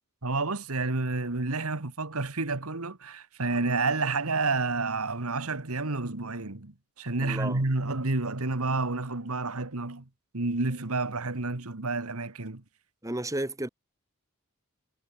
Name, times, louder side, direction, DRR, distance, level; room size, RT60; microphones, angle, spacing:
voice 1, 0.2-10.1 10.3-12.6, right 3 dB, 75° right, 1.8 m, -30 dB
voice 2, 7.2-7.6 13.0-13.7, right 1 dB, 15° right, 1.7 m, -32 dB
head